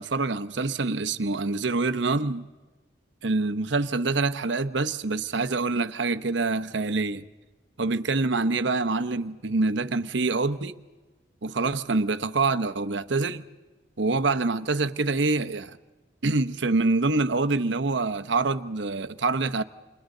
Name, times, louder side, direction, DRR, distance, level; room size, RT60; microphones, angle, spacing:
voice 1, 0.0-2.4 3.2-7.2 7.8-10.8 11.4-13.4 14.0-15.8 16.2-19.6, right 3 dB, 80° right, 0.9 m, -26 dB
29.5 x 27.5 x 3.9 m
head